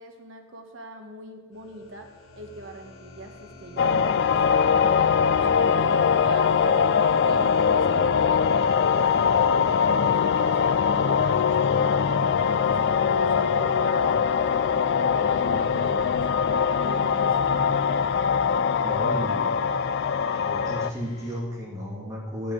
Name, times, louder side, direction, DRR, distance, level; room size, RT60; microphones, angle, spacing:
voice 1, 0.0-2.1 2.4-6.8 7.2-12.1 12.4-14.5 14.9-16.4 16.8-17.5, right 2 dB, 65° right, 3 dB, 1.3 m, -42 dB
sound 1, 1.5-21.4, left 2 dB, 85° left, 1.4 m, -46 dB
sound 2, 3.8-20.9, left 6 dB, 55° left, 0.3 m, -22 dB
voice 2, 18.8-19.5 20.3-22.5, equal, 15° right, -5 dB, 2.8 m, -34 dB
11.0 x 5.4 x 8.3 m, 1.4 s
head